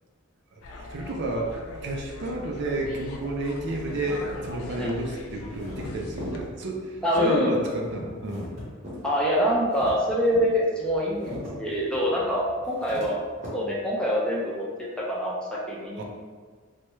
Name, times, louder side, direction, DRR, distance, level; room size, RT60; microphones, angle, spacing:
voice 1, 0.5-8.6 16.0-16.1, right 2 dB, 55° right, 0 dB, 0.4 m, -31 dB
sound 1, 0.6-6.5, left 2 dB, 80° left, 0.3 m, -41 dB
sound 2, 2.8-13.5, equal, 35° right, 0.8 m, -43 dB
voice 2, 7.0-7.6 9.0-13.3 13.5-16.0, equal, 5° left, -6 dB, 0.5 m, -25 dB
3.1 x 2.3 x 3.0 m, 1.5 s
head